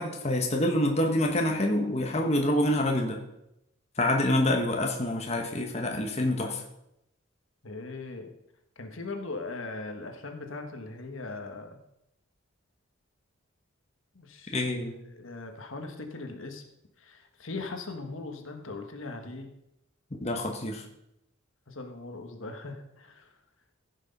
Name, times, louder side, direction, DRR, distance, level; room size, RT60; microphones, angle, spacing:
voice 1, 0.0-3.2 4.0-6.6 14.5-14.9 20.2-20.8, left 1 dB, 30° left, 2 dB, 1.2 m, -26 dB
voice 2, 7.6-8.3 8.8-11.8 14.1-14.6 15.1-16.6 17.0-19.5 21.7-23.3, left 3 dB, 70° left, 5 dB, 1.5 m, -39 dB
15.0 x 6.4 x 5.3 m, 0.84 s
head